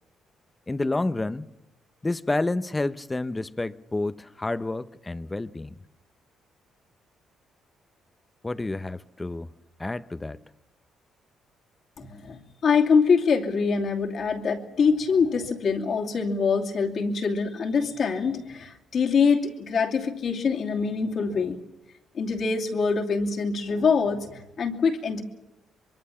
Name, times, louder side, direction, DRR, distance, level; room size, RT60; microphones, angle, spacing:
voice 1, 0.7-1.5 2.0-5.7 8.4-9.5 9.8-10.4, left 2 dB, 15° left, 0.8 m, -29 dB
voice 2, 12.0-21.6 22.1-25.2, left 5 dB, 55° left, 2.7 m, -24 dB
24.0 x 23.0 x 7.2 m
cardioid pair, 90°, 0 cm